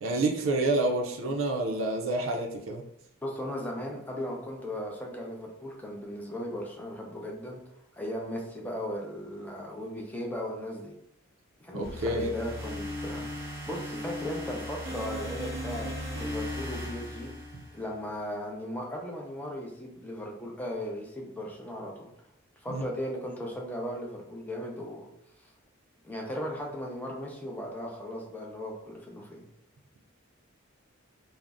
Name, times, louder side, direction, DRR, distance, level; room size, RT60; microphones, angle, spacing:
voice 1, 0.0-2.8 11.7-12.3 22.7-22.8, right 2 dB, 70° right, 1 dB, 0.4 m, -28 dB
voice 2, 3.2-7.6 7.9-10.9 11.6-13.3 13.7-17.3 17.7-22.1 22.6-25.1 25.4-25.5 26.0-29.5, equal, 10° left, -1 dB, 0.5 m, -37 dB
sound 1, 11.8-18.0, left 1 dB, 10° right, 0.9 m, -37 dB
2.5 x 2.0 x 3.4 m, 0.75 s
head